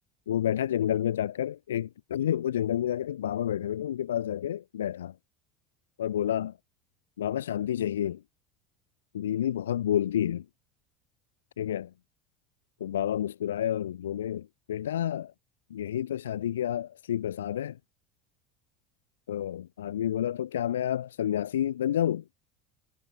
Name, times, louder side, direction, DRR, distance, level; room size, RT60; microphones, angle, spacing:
voice 1, 0.3-5.1 6.0-6.6 7.2-8.2 9.1-10.4 11.6-11.9 12.8-15.3 15.7-17.8 19.3-22.2, left 11 dB, 75° left, 2.9 m, -29 dB
figure-of-eight pair, 65°, 0 cm